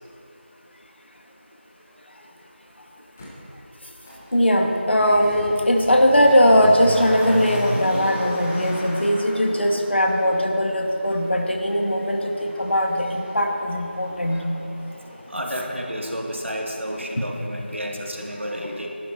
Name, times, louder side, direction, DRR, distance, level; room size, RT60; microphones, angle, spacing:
Motor vehicle (road), 3.2-3.3 4.0-16.9 17.2-17.3, equal, 10° left, 1.0 m, -35 dB
voice 1, 4.3-14.5 17.2-17.3, equal, 65° left, 2 dB, 1.6 m, -20 dB
voice 2, 15.3-18.9, equal, 85° right, 0 dB, 2.3 m, -31 dB
18.5 x 11.5 x 4.3 m, 2.8 s
figure-of-eight pair, 170°, 6 cm